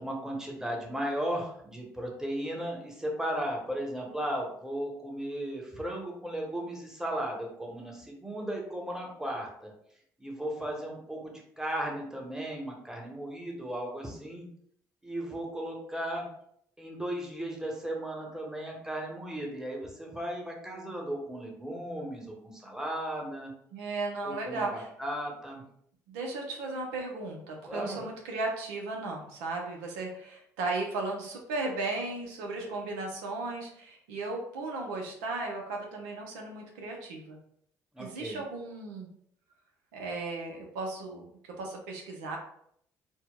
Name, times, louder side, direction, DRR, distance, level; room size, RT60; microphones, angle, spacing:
voice 1, 0.0-9.7 10.2-14.5 15.0-16.3 16.8-23.5 24.2-25.6 27.7-28.0 37.9-38.4, right 1 dB, 5° right, 0 dB, 1.0 m, -36 dB
voice 2, 23.7-24.9 26.1-37.4 38.0-39.1 39.9-42.4, right 3 dB, 80° right, 1 dB, 0.6 m, -36 dB
4.4 x 2.1 x 2.2 m, 0.68 s
hypercardioid pair, 55°, 9 cm